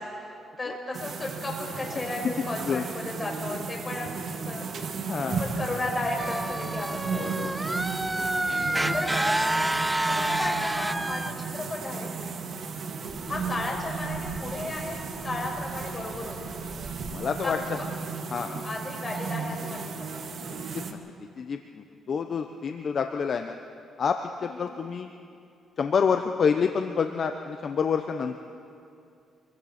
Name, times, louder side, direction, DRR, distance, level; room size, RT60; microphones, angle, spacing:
voice 1, 0.6-4.7 5.2-7.3 8.5-9.7 10.1-12.1 13.3-16.4 17.4-17.9 18.6-19.8 20.1-20.4 21.9-22.2 24.4-24.7, left 2 dB, 25° left, 0 dB, 5.5 m, -34 dB
sound 1, 0.9-20.9, right 5 dB, 55° right, 1.8 m, -35 dB
voice 2, 5.0-5.4 7.2-7.8 8.7-8.9 10.0-10.2 12.4-12.5 17.1-17.8 18.3-18.6 20.4-20.8 21.4-23.6 24.0-25.1 25.8-28.4, left 6 dB, 50° left, 6 dB, 0.9 m, -28 dB
sound 2, 6.2-11.3, right 1 dB, 10° right, 0.6 m, -28 dB
27.5 x 23.0 x 4.4 m, 2.5 s
cardioid pair, 90°, 0 cm